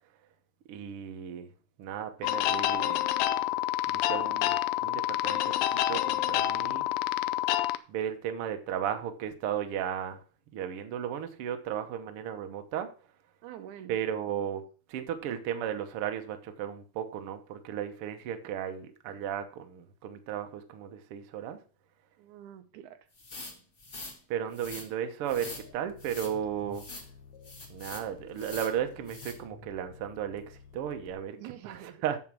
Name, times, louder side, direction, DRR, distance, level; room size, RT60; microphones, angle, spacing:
voice 1, 0.7-1.5 1.8-3.1 3.9-5.5 5.9-6.9 7.9-10.2 10.5-12.9 13.9-14.6 14.9-21.6 24.3-26.8 27.7-31.4 31.6-32.2, right 9 dB, 60° right, 1.7 m, -35 dB
sound 1, 2.2-7.8, left 13 dB, 80° left, 1.9 m, -28 dB
voice 2, 13.4-14.0 22.2-23.1 31.4-32.0, right 11 dB, 85° right, 2.2 m, -46 dB
sound 2, 23.2-24.2 24.5-24.9 25.3-25.6 26.0-26.3 26.7-27.1 27.4-28.0 28.4-28.7 29.1-29.3, left 2 dB, 25° left, 2.1 m, -43 dB
sound 3, 25.3-31.1, left 6 dB, 50° left, 1.4 m, -52 dB
7.8 x 7.3 x 6.1 m
omnidirectional pair, 3.4 m